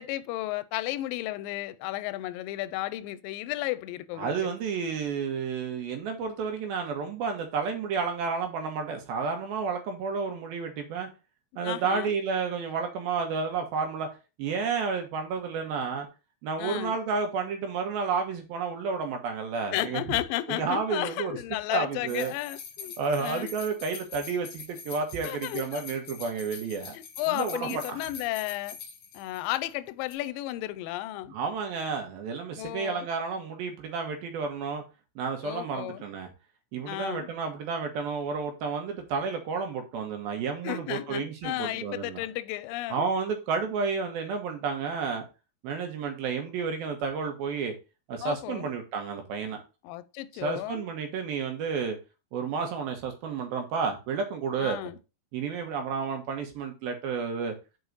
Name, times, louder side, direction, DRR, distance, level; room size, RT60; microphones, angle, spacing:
voice 1, 0.0-4.5 11.6-12.1 16.6-17.0 19.7-23.5 25.2-25.8 26.9-28.8 29.1-31.3 32.6-33.1 35.4-36.0 36.8-37.3 40.6-43.1 48.2-48.7 49.8-50.8 54.6-55.0, left 16 dB, 80° left, 2.1 m, -33 dB
voice 2, 4.2-11.1 11.6-14.1 14.4-16.1 16.4-20.0 20.5-21.3 21.7-22.3 23.0-27.0 27.3-28.0 31.3-34.8 35.2-36.3 36.7-42.2 42.9-45.2 45.6-47.7 48.1-49.6 50.4-52.0 52.3-54.8 55.3-57.5, right 5 dB, 80° right, 3.1 m, -31 dB
sound 1, 22.1-29.7 30.0-30.2, left 6 dB, 60° left, 1.7 m, -44 dB
6.3 x 4.7 x 4.0 m
omnidirectional pair, 4.2 m